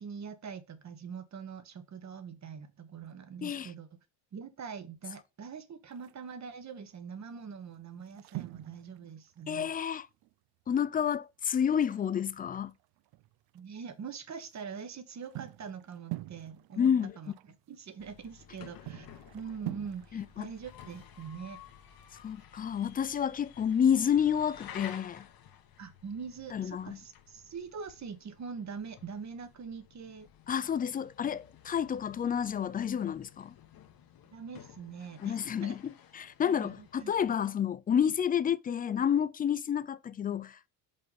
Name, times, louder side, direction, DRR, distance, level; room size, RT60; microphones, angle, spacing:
voice 1, 0.0-3.9 4.3-9.7 13.5-16.9 17.2-17.3 17.7-19.1 19.3-21.6 25.8-30.3 34.3-35.8 36.4-37.1, right 6 dB, 35° right, 1.2 m, -43 dB
voice 2, 3.4-3.7 9.5-10.1 10.7-12.7 16.8-17.2 20.1-20.5 22.2-25.3 26.5-27.0 30.5-33.5 35.2-40.7, left 8 dB, 20° left, 0.3 m, -30 dB
sound 1, 5.9-6.5 7.2-7.4 7.6-10.3 10.6-10.7 11.0-11.1 11.6-13.7 14.1-22.4, right 19 dB, 55° right, 0.5 m, -46 dB
sound 2, 18.0-37.4, left 9 dB, 50° left, 1.1 m, -53 dB
5.5 x 4.0 x 5.7 m
supercardioid pair, 85°, 46 cm